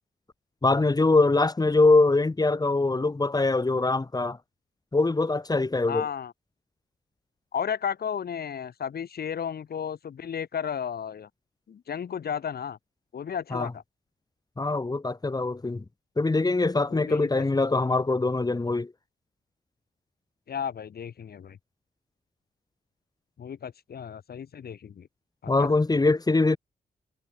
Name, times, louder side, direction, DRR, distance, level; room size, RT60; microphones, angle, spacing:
voice 1, 0.6-4.4 4.9-6.0 13.5-13.7 14.6-15.8 16.2-18.9 25.5-26.6, left 3 dB, 25° left, 2.7 m, -23 dB
voice 2, 5.9-6.3 7.5-11.3 11.7-12.8 13.1-13.8 16.9-17.4 20.5-21.6 23.4-25.1 25.4-25.7, left 8 dB, 65° left, 3.2 m, -33 dB
cardioid pair, 105°, 17 cm